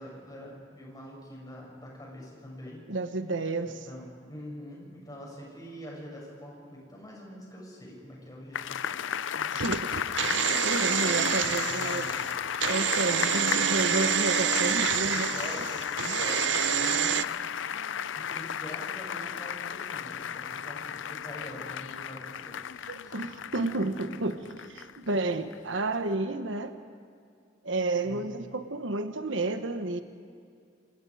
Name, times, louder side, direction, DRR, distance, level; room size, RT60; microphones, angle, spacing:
voice 1, 0.0-2.8 3.9-9.0 9.3-10.2 11.4-12.3 15.1-17.3 17.7-23.2 23.7-24.2 28.0-28.4, equal, 20° left, -2 dB, 7.3 m, -45 dB
voice 2, 2.9-3.8 9.5-12.1 12.6-15.7 22.9-26.7 27.6-30.0, right 2 dB, 85° right, 8 dB, 1.3 m, -31 dB
sound 1, 8.5-25.1 25.5-25.6, left 8 dB, 80° left, 0.5 m, -34 dB
sound 2, 9.6-17.2, right 9 dB, 70° right, 0.6 m, -28 dB
28.0 x 27.0 x 5.0 m, 2.4 s
head